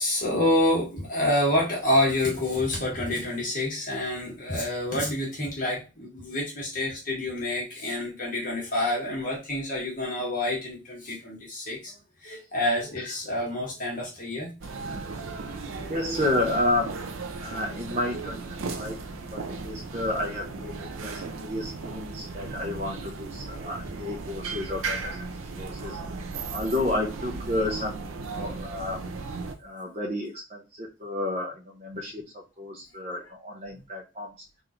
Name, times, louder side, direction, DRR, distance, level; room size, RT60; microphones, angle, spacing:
voice 1, 0.0-11.9 12.2-14.5, left 1 dB, 40° left, -3 dB, 1.8 m, -27 dB
sound 1, 14.6-29.6, right 3 dB, 90° right, 0.6 m, -36 dB
voice 2, 15.9-17.0 17.4-19.0 19.3-25.3 25.6-26.0 26.5-29.0 29.6-34.3, left 1 dB, 35° right, -1 dB, 0.7 m, -31 dB
4.0 x 2.6 x 4.3 m, 0.28 s
head